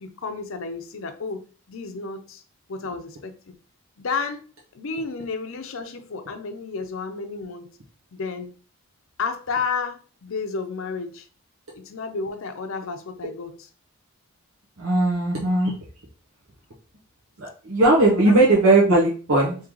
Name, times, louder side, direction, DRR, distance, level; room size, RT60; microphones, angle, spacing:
voice 1, 0.0-2.4 2.7-3.5 4.0-7.7 8.1-8.5 9.2-11.3 11.7-13.6 18.2-18.4, left 4 dB, 70° left, 0.5 m, -32 dB
voice 2, 14.8-15.7 17.4-19.6, right 2 dB, 85° right, 0.9 m, -18 dB
3.7 x 2.8 x 3.0 m
head